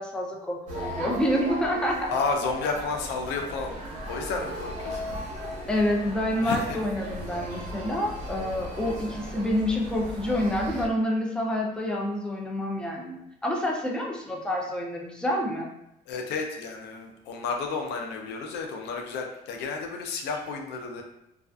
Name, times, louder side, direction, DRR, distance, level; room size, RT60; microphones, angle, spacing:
voice 1, 0.0-2.1 5.7-15.7, left 1 dB, 5° left, -1 dB, 0.4 m, -28 dB
sound 1, 0.7-10.9, right 1 dB, 45° right, 0.8 m, -36 dB
voice 2, 2.1-3.8 4.1-5.1 6.4-6.8 7.5-7.7 16.1-21.0, left 4 dB, 85° left, 3 dB, 0.5 m, -31 dB
2.4 x 2.3 x 2.3 m, 0.82 s
cardioid pair, 110°, 17 cm